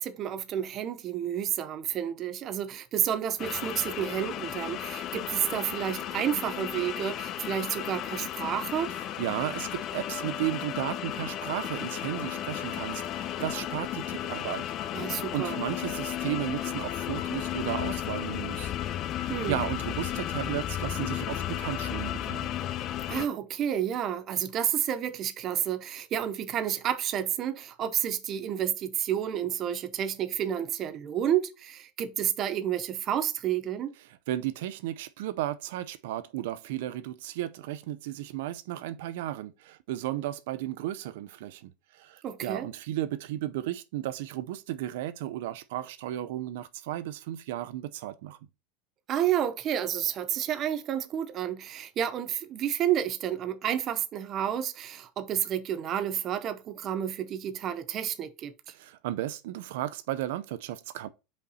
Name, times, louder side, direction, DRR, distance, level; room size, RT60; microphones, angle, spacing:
voice 1, 0.0-8.9 14.9-15.6 19.3-19.6 23.1-33.9 42.2-42.7 49.1-58.5, right 10 dB, 30° right, 0.6 m, -30 dB
sound 1, 3.4-23.3, left 11 dB, 30° left, 0.4 m, -34 dB
voice 2, 9.2-14.9 15.3-18.7 19.1-22.5 34.3-48.4 58.7-61.1, right 13 dB, 70° right, 0.6 m, -34 dB
5.4 x 5.2 x 4.2 m
supercardioid pair, 175°, 0 cm